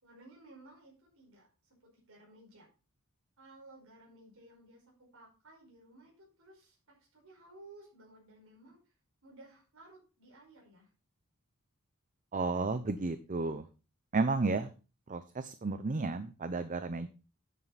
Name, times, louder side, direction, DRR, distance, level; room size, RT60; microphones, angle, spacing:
voice 1, 0.0-2.7 3.4-8.9 9.2-10.9, right 2 dB, 65° right, -2 dB, 5.1 m, -57 dB
voice 2, 12.3-13.7 14.1-14.7 15.1-17.1, right 3 dB, 35° right, 11 dB, 0.6 m, -32 dB
9.2 x 9.2 x 4.1 m, 0.33 s
head